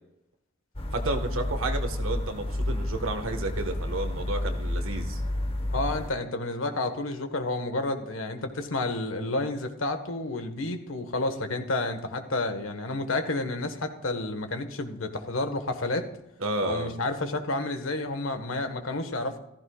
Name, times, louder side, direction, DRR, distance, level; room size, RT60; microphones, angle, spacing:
sound 1, 0.7-6.1, left 1 dB, 30° left, 1.1 m, -30 dB
voice 1, 0.9-5.2 16.4-16.9, right 2 dB, 85° right, 6 dB, 1.5 m, -31 dB
voice 2, 5.7-16.1 16.6-19.4, left 2 dB, 80° left, 7 dB, 1.5 m, -30 dB
15.0 x 14.5 x 2.4 m, 0.84 s
head